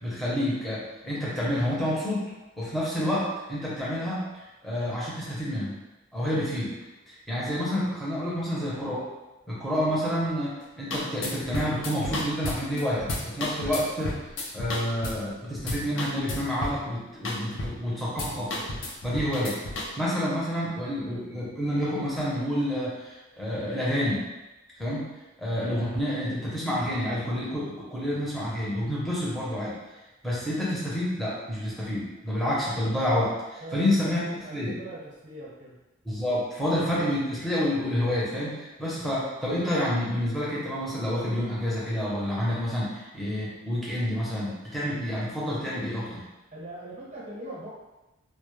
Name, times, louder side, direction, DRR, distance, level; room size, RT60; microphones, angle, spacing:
voice 1, 0.0-2.3 2.6-4.3 4.6-5.8 6.1-6.7 7.1-9.1 9.5-14.2 14.5-18.7 19.0-19.6 20.0-24.2 24.8-25.1 25.4-29.8 30.2-34.8 36.0-46.2, equal, ahead, -8 dB, 0.6 m, -29 dB
sound 1, 10.6-10.7 10.9-15.3 15.6-16.9 17.2-17.9 18.2-19.9, left 2 dB, 65° left, 0.4 m, -33 dB
voice 2, 33.6-35.8 46.5-47.7, right 1 dB, 35° right, -5 dB, 0.7 m, -41 dB
2.1 x 2.0 x 3.0 m, 1.1 s
head